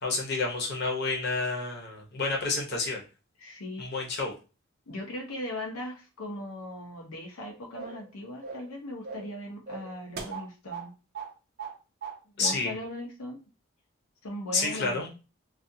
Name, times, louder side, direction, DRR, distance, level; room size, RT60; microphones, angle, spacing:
voice 1, 0.0-3.0 3.8-4.3 12.4-12.7 14.5-15.1, left 3 dB, 50° left, 0 dB, 0.7 m, -29 dB
voice 2, 3.4-4.0 4.9-10.9 12.3-13.4 14.2-15.0, left 1 dB, 90° left, 1 dB, 0.7 m, -39 dB
sound 1, 7.8-8.1 8.4-8.7 9.0-9.4 9.7-10.9 11.1-11.3 11.6-12.2 12.4-12.6, right 5 dB, 45° right, 0.5 m, -39 dB
2.4 x 2.3 x 2.6 m, 0.32 s
head